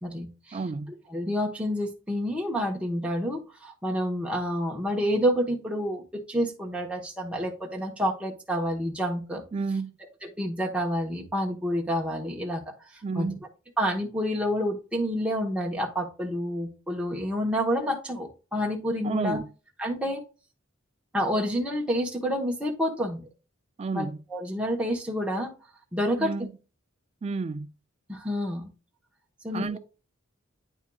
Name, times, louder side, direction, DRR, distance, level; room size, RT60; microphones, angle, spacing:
voice 1, 0.0-0.6 1.1-9.4 10.2-12.7 13.1-13.3 13.8-19.4 19.8-20.2 21.1-23.2 23.9-24.0 24.3-25.5 25.9-26.3 28.1-28.7 29.4-29.8, equal, 5° right, 1.0 m, -28 dB
voice 2, 0.5-1.0 9.5-10.0 13.0-13.4 19.0-19.5 23.8-24.2 26.2-26.5 27.2-27.7 29.5-29.8, right 4 dB, 30° right, 0.3 m, -31 dB
9.5 x 4.5 x 2.3 m
head